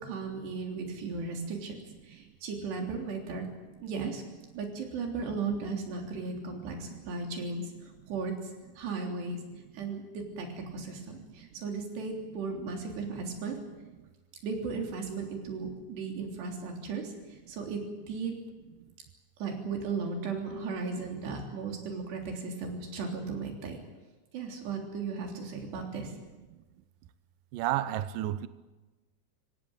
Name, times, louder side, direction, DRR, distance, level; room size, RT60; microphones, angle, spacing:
voice 1, 0.0-1.8 2.0-3.4 3.8-4.2 4.6-8.3 8.8-9.4 9.7-10.5 10.7-13.6 14.4-17.1 17.5-17.8 18.1-18.3 19.4-23.8 24.3-26.1, right 4 dB, 65° right, 5.5 m, -36 dB
voice 2, 27.5-28.5, right 13 dB, 90° right, 1.9 m, -30 dB
25.0 x 17.5 x 8.9 m
omnidirectional pair, 5.2 m